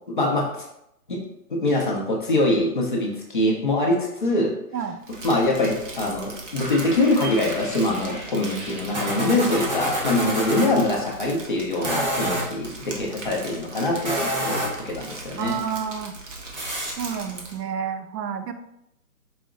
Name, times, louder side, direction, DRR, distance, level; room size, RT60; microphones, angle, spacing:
voice 1, 0.1-0.5 1.1-1.2 1.5-4.5 5.2-14.6 14.9-15.6, left 2 dB, 35° left, -2 dB, 0.5 m, -23 dB
Crumpling crinkling, 5.0-17.6, right 2 dB, 50° right, 0.9 m, -39 dB
sound 1, 6.6-10.7 11.7-12.5 13.9-14.9 16.6-16.9, right 1 dB, 30° right, 0.7 m, -29 dB
voice 2, 15.4-16.2 17.0-18.5, right 7 dB, 90° right, 8 dB, 0.6 m, -30 dB
4.8 x 2.1 x 3.7 m, 0.81 s
hypercardioid pair, 160°, 47 cm